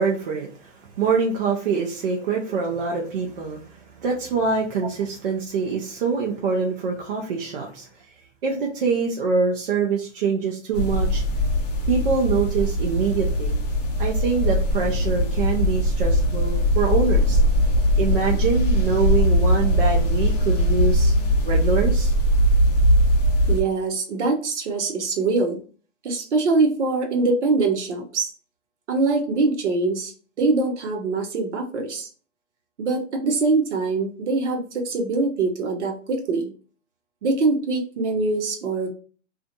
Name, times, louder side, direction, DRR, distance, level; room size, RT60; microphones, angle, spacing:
voice 1, 0.0-7.9 8.4-11.2 11.9-13.6 14.0-17.4 18.0-22.1, right 5 dB, 45° right, -1 dB, 0.6 m, -25 dB
sound 1, 10.7-23.6, equal, 35° left, 0.5 m, -20 dB
voice 2, 23.5-25.6 26.0-28.3 28.9-30.1 30.4-32.1 32.8-36.5 37.2-38.9, right 3 dB, 65° right, 3 dB, 0.9 m, -23 dB
2.5 x 2.4 x 2.6 m, 0.40 s
hypercardioid pair, 145°, 37 cm